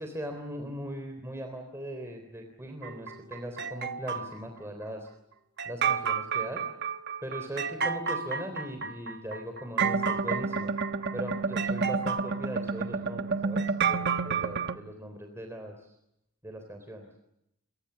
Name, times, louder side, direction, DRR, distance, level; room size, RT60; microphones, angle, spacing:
voice 1, 0.0-5.1 5.7-6.6 7.2-10.7 11.1-15.9 16.4-17.1, equal, 10° right, 4 dB, 3.7 m, -39 dB
sound 1, 2.8-4.4 5.6-14.8, right 5 dB, 50° right, 1.2 m, -30 dB
30.0 x 23.5 x 7.0 m, 0.84 s
head